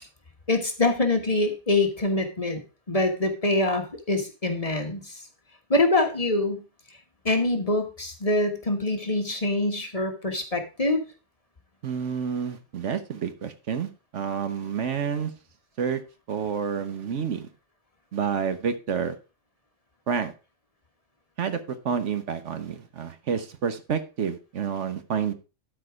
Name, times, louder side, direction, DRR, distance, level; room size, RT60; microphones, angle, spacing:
voice 1, 0.5-2.6 2.9-5.2 5.7-6.6 7.2-11.0, left 2 dB, 30° left, 4 dB, 1.3 m, -24 dB
voice 2, 11.8-15.3 15.8-16.0 16.3-17.5 18.1-19.1 20.1-20.3 21.4-25.3, right 7 dB, 70° right, 10 dB, 1.3 m, -29 dB
12.0 x 4.7 x 4.8 m, 0.31 s
omnidirectional pair, 1.3 m